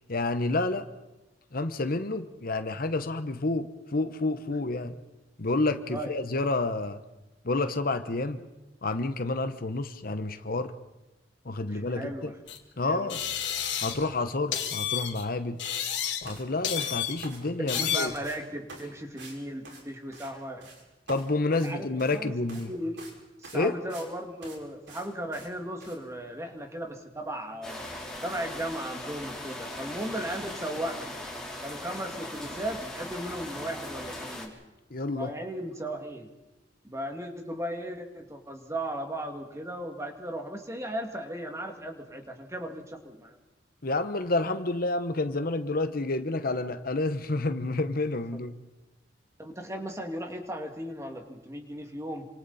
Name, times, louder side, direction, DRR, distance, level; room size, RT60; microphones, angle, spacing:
voice 1, 0.1-0.9 1.5-5.0 5.4-7.0 7.4-8.4 8.8-10.7 11.4-12.3 12.8-13.2 13.8-15.6 16.2-18.1 21.1-22.7 23.5-23.7 34.9-35.3 43.8-48.5, left 2 dB, 55° left, 9 dB, 1.1 m, -29 dB
voice 2, 11.7-12.3 12.8-13.1 17.6-20.7 21.5-22.3 22.7-23.0 23.4-27.8 28.2-31.1 31.6-34.5 35.1-36.3 36.8-43.4 48.3-48.4 49.4-52.3, right 1 dB, 15° right, 3 dB, 2.4 m, -36 dB
sound 1, 12.5-12.6 13.1-14.1 14.5-15.2 15.6-16.4 16.6-17.3 17.7-18.2, left 9 dB, 80° left, 3.1 m, -31 dB
sound 2, 16.2-16.4 16.8-17.9 18.2-18.4 18.7-18.9 19.2-19.4 19.6-20.3 20.6-20.8 21.1-22.2 22.5-22.7 23.0-23.2 23.4-24.1 24.4-24.6 24.9-25.1 25.3-25.5 25.8-26.0, right 2 dB, 85° right, 5.8 m, -46 dB
sound 3, 27.6-34.5, left 1 dB, 5° left, 4.0 m, -39 dB
28.0 x 26.0 x 4.3 m, 1.0 s
head